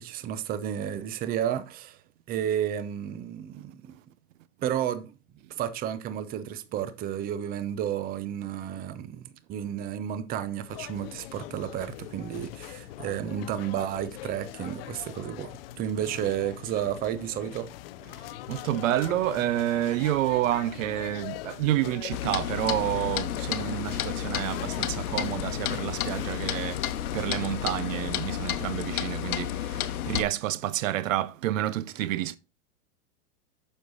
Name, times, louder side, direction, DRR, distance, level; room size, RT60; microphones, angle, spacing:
voice 1, 0.0-2.0 2.3-4.0 4.6-5.1 5.6-15.5 15.8-17.7, right 10 dB, 20° right, 0.6 m, -32 dB
sound 1, 10.7-27.3, left 15 dB, 45° left, 0.4 m, -42 dB
voice 2, 18.5-32.4, right 14 dB, 60° right, 0.6 m, -29 dB
Clock, 22.1-30.2, left 11 dB, 70° left, 0.9 m, -31 dB
7.6 x 6.6 x 4.0 m
hypercardioid pair, 125°, 45 cm